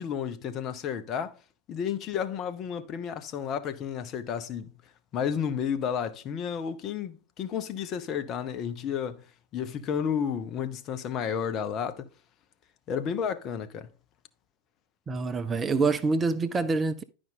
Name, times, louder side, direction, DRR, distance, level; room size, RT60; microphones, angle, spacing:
voice 1, 0.0-1.4 1.7-4.8 5.1-9.2 9.5-12.1 12.9-13.9, left 7 dB, 35° left, 0.7 m, -32 dB
voice 2, 15.1-17.0, right 4 dB, 20° right, 0.6 m, -26 dB
10.5 x 5.1 x 3.7 m
figure-of-eight pair, 90°, 0 cm